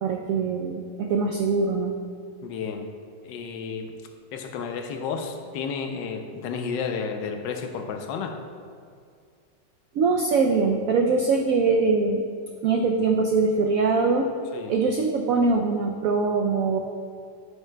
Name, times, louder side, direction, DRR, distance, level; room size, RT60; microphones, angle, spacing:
voice 1, 0.0-1.9 9.9-12.2 12.6-14.3 14.7-16.8, right 4 dB, 85° right, 3 dB, 0.7 m, -22 dB
voice 2, 2.4-2.9 3.2-4.0 4.3-8.4 14.5-14.8, left 5 dB, 75° left, 5 dB, 1.3 m, -32 dB
8.9 x 7.9 x 2.2 m, 2.3 s
omnidirectional pair, 2.0 m